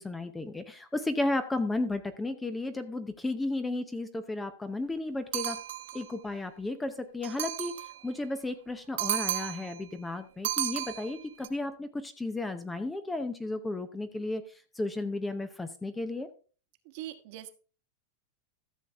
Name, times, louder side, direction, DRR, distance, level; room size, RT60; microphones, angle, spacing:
voice 1, 0.0-5.6 5.9-7.7 8.0-14.4 14.7-16.3, left 2 dB, 5° left, 10 dB, 0.6 m, -33 dB
sound 1, 5.3-6.1 7.2-8.0 9.0-9.8 10.4-11.5, right 13 dB, 80° right, 1.0 m, -33 dB
voice 2, 16.9-17.5, right 13 dB, 50° right, 8 dB, 1.2 m, -41 dB
13.5 x 6.9 x 3.5 m, 0.37 s
supercardioid pair, 160°, 0 cm